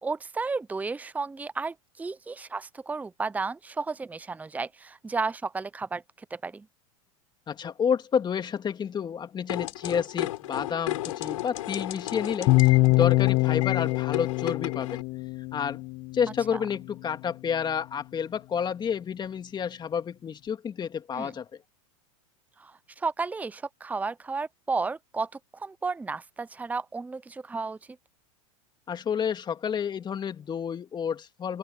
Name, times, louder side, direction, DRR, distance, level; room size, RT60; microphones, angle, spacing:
voice 1, 0.0-6.7 16.5-16.6 21.1-21.3 22.6-27.8, right 4 dB, 10° right, 0.7 m, -33 dB
voice 2, 7.5-15.0 15.5-15.8 16.1-21.5 28.9-31.6, left 7 dB, 25° left, 2.5 m, -30 dB
sound 1, 9.5-15.0, left 15 dB, 75° left, 6.5 m, -34 dB
sound 2, 12.5-16.5, left 24 dB, 50° left, 0.7 m, -24 dB
hypercardioid pair, 105°, 17 cm